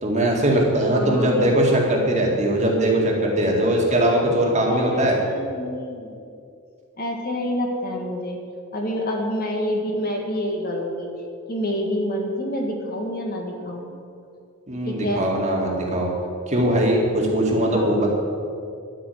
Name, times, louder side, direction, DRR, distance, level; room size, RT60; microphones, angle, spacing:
voice 1, 0.0-5.2 14.7-16.1 16.5-18.1, right 1 dB, 30° right, -1 dB, 2.1 m, -20 dB
voice 2, 0.9-1.5 4.7-6.2 7.0-8.4 8.7-11.1 11.5-13.9 14.8-15.3 17.7-18.1, equal, 40° left, 1 dB, 1.7 m, -27 dB
12.5 x 6.0 x 9.4 m, 2.4 s
head